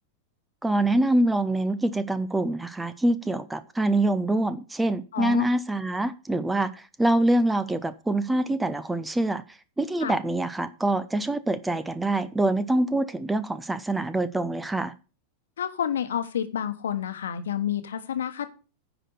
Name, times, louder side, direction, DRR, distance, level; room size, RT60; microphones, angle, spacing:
voice 1, 0.6-9.4 9.8-14.9, right 1 dB, 10° right, 0.6 m, -25 dB
voice 2, 5.1-5.5 10.0-10.2 15.6-18.5, left 9 dB, 65° left, 1.2 m, -29 dB
9.8 x 4.9 x 6.6 m
figure-of-eight pair, 90°, 0 cm